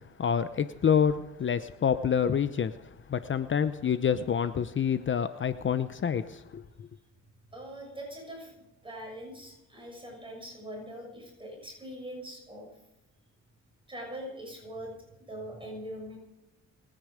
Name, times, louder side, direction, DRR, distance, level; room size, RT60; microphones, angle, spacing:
voice 1, 0.2-2.7 3.1-6.9, left 7 dB, 40° left, 12 dB, 0.8 m, -27 dB
voice 2, 7.5-12.7 13.9-16.2, equal, 15° right, 0 dB, 6.6 m, -42 dB
27.0 x 10.0 x 5.1 m, 0.92 s
cardioid pair, 90°, 30 cm